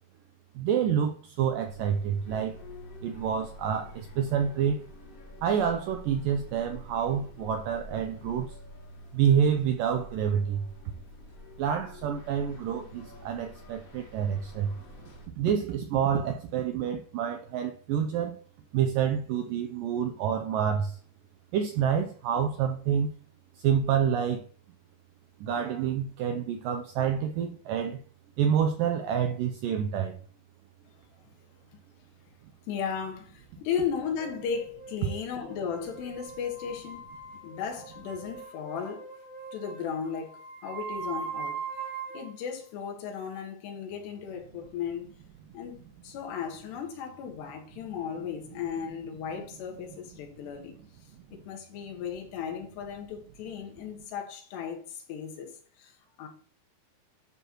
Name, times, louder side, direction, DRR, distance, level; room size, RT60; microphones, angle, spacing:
voice 1, 0.6-2.6 3.0-4.8 5.4-8.5 9.1-10.7 11.6-14.7 15.4-18.4 18.7-21.0 21.5-23.1 23.6-24.4 25.4-28.0 28.4-30.2, right 8 dB, 90° right, 1.9 m, -28 dB
sound 1, 1.6-15.3, left 1 dB, 65° left, 0.8 m, -47 dB
voice 2, 32.7-37.0 37.4-39.1 39.5-41.6 42.1-45.1 45.5-50.8 51.3-56.3, left 7 dB, 85° left, 3.8 m, -36 dB
sound 2, 34.2-42.4, right 5 dB, 35° right, 4.2 m, -41 dB
11.5 x 7.0 x 3.1 m
omnidirectional pair, 4.7 m